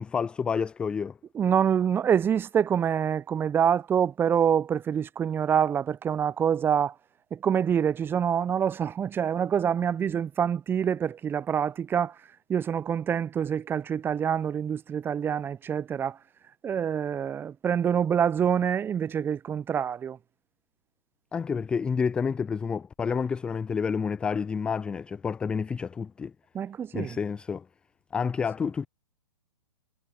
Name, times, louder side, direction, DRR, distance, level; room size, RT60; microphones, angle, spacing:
voice 1, 0.0-1.2 21.3-26.3 26.9-27.7 28.1-28.9, left 6 dB, 5° left, 0.3 m, -29 dB
voice 2, 1.3-6.9 7.3-12.2 12.5-16.2 16.6-20.2 26.5-27.2 28.6-28.7, right 8 dB, 10° right, 0.8 m, -26 dB
figure-of-eight pair, 120°, 17 cm